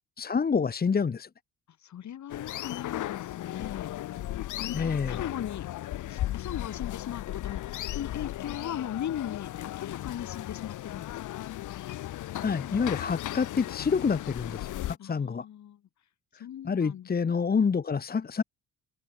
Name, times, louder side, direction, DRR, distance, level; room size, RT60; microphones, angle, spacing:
voice 1, 0.2-1.3 4.7-5.2 12.4-14.7 15.0-15.4 16.6-18.4, left 5 dB, 30° left, 1.3 m, -27 dB
voice 2, 1.8-3.9 4.6-5.7 6.1-11.5 15.0-15.8 16.4-17.1, left 10 dB, 65° left, 7.4 m, -38 dB
sound 1, 2.3-15.0, left 14 dB, 80° left, 3.0 m, -36 dB
open air
cardioid pair, 90°, 30 cm